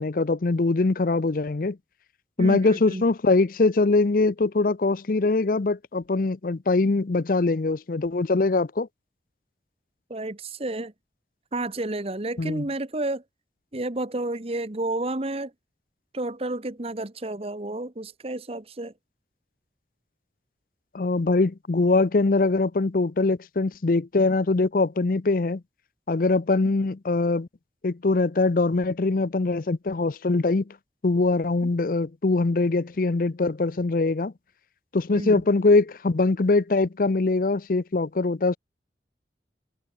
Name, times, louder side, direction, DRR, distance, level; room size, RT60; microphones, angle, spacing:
voice 1, 0.0-1.8 2.4-8.9 12.4-12.7 20.9-25.6 26.1-27.5 27.8-30.7 31.0-34.3 34.9-38.6, left 3 dB, 50° left, 0.6 m, -22 dB
voice 2, 2.4-3.0 10.1-10.9 11.5-13.2 13.7-15.5 16.1-18.9 35.1-35.4, right 2 dB, 35° right, 1.2 m, -31 dB
head